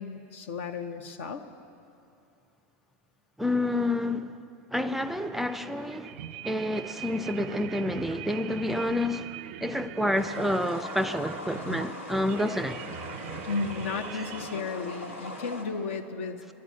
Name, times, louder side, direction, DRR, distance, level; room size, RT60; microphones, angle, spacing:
voice 1, 0.0-1.4 13.5-16.4, left 4 dB, 70° left, 0.9 m, -34 dB
voice 2, 3.4-4.4 4.7-9.3 9.6-12.8 14.1-14.2, left 1 dB, 5° right, 0.4 m, -29 dB
sound 1, 5.0-14.6, right 12 dB, 65° right, 0.4 m, -42 dB
sound 2, 10.1-15.6, left 1 dB, 90° left, 1.8 m, -40 dB
11.0 x 10.5 x 7.4 m
hypercardioid pair, 90°, 7 cm